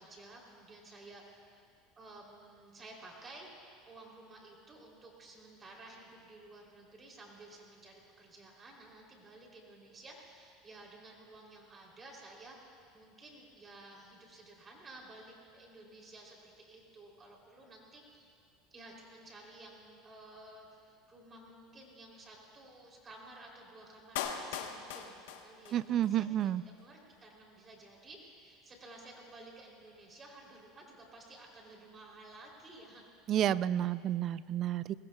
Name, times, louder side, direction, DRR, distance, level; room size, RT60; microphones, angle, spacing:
voice 1, 0.0-1.6 2.0-18.3 18.7-26.5 26.8-33.0, right 2 dB, 25° right, -1 dB, 3.1 m, -54 dB
Clapping, 24.2-26.1 26.4-26.5, left 8 dB, 85° left, 1.1 m, -40 dB
voice 2, 25.7-26.6 33.3-34.9, right 11 dB, 45° right, 17 dB, 0.3 m, -30 dB
23.5 x 20.5 x 2.3 m, 2.3 s
supercardioid pair, 115°, 0 cm